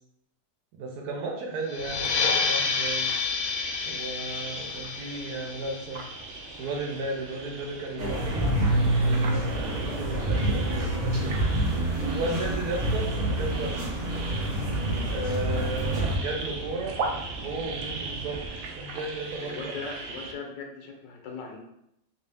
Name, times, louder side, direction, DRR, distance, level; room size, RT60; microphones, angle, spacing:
voice 1, 0.8-3.1 3.8-6.0 6.6-8.6 8.9-11.4 12.1-13.9 15.1-17.0 17.4-18.4 18.7-19.7, right 2 dB, 70° right, 0 dB, 1.2 m, -34 dB
sound 1, 1.7-6.9, left 5 dB, 65° left, 0.9 m, -30 dB
sound 2, 1.7-20.3, right 3 dB, 90° right, 0.6 m, -39 dB
sound 3, 8.0-16.2, right 1 dB, 45° right, 0.5 m, -27 dB
voice 2, 19.4-21.6, left 4 dB, 85° left, 2 dB, 1.4 m, -39 dB
3.3 x 2.7 x 3.4 m, 0.80 s
omnidirectional pair, 1.9 m